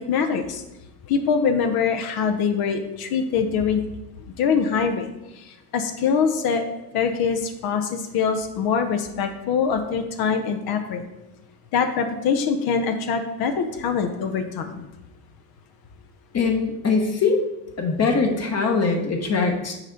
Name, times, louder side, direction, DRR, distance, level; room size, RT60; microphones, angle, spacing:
voice 1, 0.1-0.6 1.1-3.8 4.4-5.1 5.4-6.6 6.9-11.0 11.7-14.9, left 6 dB, 60° left, 7 dB, 0.7 m, -23 dB
voice 2, 16.3-17.4 17.8-19.7, left 4 dB, 35° left, 2 dB, 1.0 m, -22 dB
6.0 x 4.3 x 3.9 m, 0.95 s
supercardioid pair, 75°, 42 cm